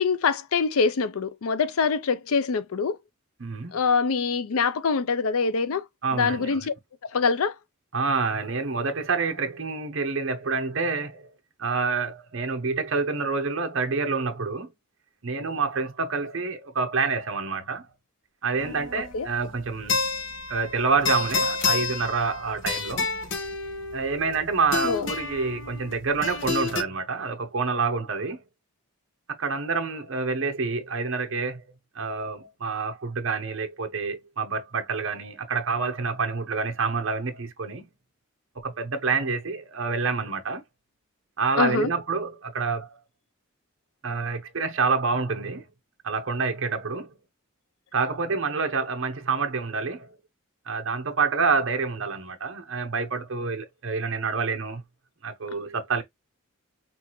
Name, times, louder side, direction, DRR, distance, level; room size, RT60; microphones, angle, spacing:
voice 1, 0.0-3.0 3.7-5.9 6.1-6.7 7.1-7.5 19.1-19.3 24.8-25.1 41.6-41.9, left 5 dB, 80° left, 0.5 m, -24 dB
voice 2, 3.4-3.7 6.0-6.7 7.9-11.3 11.6-14.7 15.2-17.8 18.4-20.1 20.5-23.0 23.9-28.4 29.4-31.6 31.9-37.9 38.6-40.6 41.4-43.0 44.0-45.7 46.0-47.2 47.9-50.1 50.7-54.8 55.2-56.0, right 4 dB, 60° right, 0.8 m, -27 dB
sound 1, 18.6-26.8, left 4 dB, 60° left, 0.9 m, -30 dB
5.9 x 2.5 x 3.0 m
head